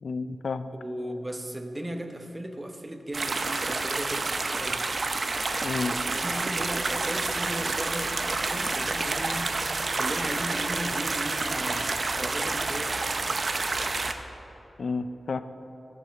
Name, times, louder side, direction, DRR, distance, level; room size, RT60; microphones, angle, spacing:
voice 1, 0.0-0.7 5.6-5.9 14.8-15.4, left 4 dB, 75° left, 11 dB, 0.4 m, -30 dB
voice 2, 0.8-4.9 6.0-9.6 10.0-13.0, right 1 dB, 20° right, 6 dB, 1.1 m, -36 dB
sound 1, 3.1-14.1, right 3 dB, 55° right, 0.7 m, -29 dB
14.5 x 7.4 x 6.3 m, 3.0 s
wide cardioid pair, 70°, 0 cm